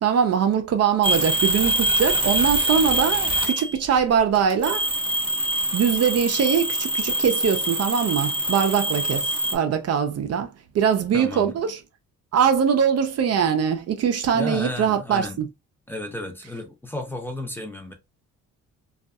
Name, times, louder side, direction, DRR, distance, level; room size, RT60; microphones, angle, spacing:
voice 1, 0.0-4.9 5.7-11.8 12.3-15.5, right 7 dB, 55° right, 0.5 m, -22 dB
sound 1, 1.0-3.9 4.3-9.5, right 1 dB, 15° right, 0.8 m, -24 dB
voice 2, 11.1-11.6 14.3-15.4 15.9-17.9, left 2 dB, 5° left, 0.6 m, -33 dB
2.6 x 2.4 x 2.2 m
cardioid pair, 90°, 30 cm